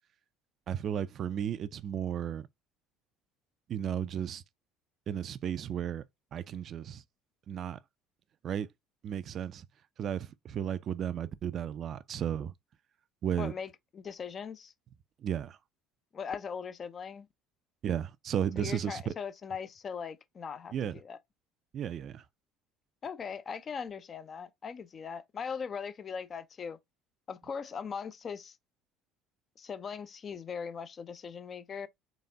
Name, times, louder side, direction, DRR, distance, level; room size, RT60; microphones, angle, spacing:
voice 1, 0.7-2.5 3.7-4.4 5.1-6.0 6.3-7.0 7.5-7.8 8.4-8.7 9.0-9.7 10.0-12.5 13.2-13.5 15.2-15.6 17.8-19.1 20.7-21.0 21.7-22.2, right 9 dB, 45° right, 0.4 m, -34 dB
voice 2, 13.4-14.7 16.1-17.3 18.6-21.2 23.0-26.8 27.3-28.6 29.6-31.9, left 6 dB, 35° left, 0.5 m, -40 dB
4.1 x 3.5 x 3.3 m
figure-of-eight pair, 60°, 0 cm